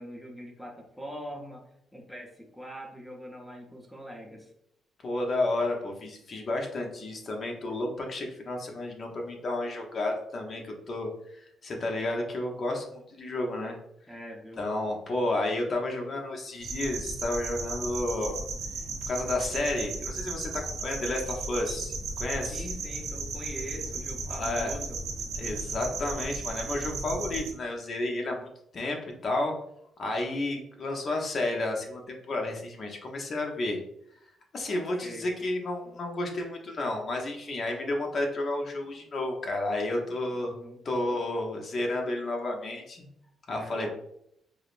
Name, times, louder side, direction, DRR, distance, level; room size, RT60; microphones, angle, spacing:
voice 1, 0.0-1.6 1.9-4.5 14.1-14.6 22.5-25.0 35.0-35.3 40.3-40.8 43.5-43.9, equal, ahead, -1 dB, 0.7 m, -42 dB
voice 2, 5.0-13.8 14.6-18.4 19.1-22.7 24.3-24.7 25.4-28.5 28.7-29.5 30.0-33.8 34.5-40.5 40.8-43.1 43.5-43.9, left 2 dB, 45° left, 1 dB, 0.8 m, -31 dB
sound 1, 16.6-27.5, right 3 dB, 90° right, 0.9 m, -35 dB
4.8 x 2.0 x 2.5 m, 0.74 s
cardioid pair, 90°, 0 cm